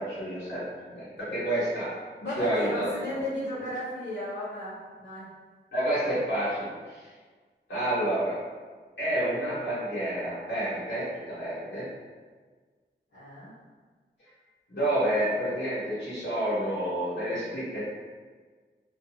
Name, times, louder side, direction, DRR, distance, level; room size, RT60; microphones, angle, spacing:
voice 1, 0.0-2.0 2.4-3.2 5.7-7.1 7.7-8.4 9.0-11.9 14.7-17.8, right 1 dB, 90° left, -11 dB, 1.1 m, -29 dB
voice 2, 2.2-5.3 13.1-13.5, equal, 65° left, -12 dB, 1.0 m, -34 dB
2.5 x 2.0 x 2.7 m, 1.4 s
wide cardioid pair, 75°, 19 cm